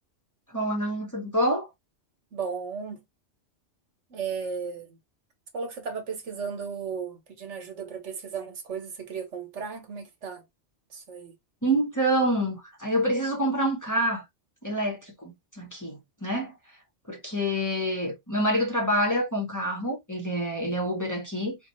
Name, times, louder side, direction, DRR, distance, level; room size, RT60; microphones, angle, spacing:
voice 1, 0.5-1.7 11.6-14.2 14.6-16.5 17.1-21.6, equal, 15° left, 0.9 m, -27 dB
voice 2, 2.3-3.0 4.1-4.9 5.5-10.4 10.9-11.3, right 6 dB, 75° right, 1.4 m, -35 dB
4.2 x 2.4 x 3.0 m
omnidirectional pair, 1.2 m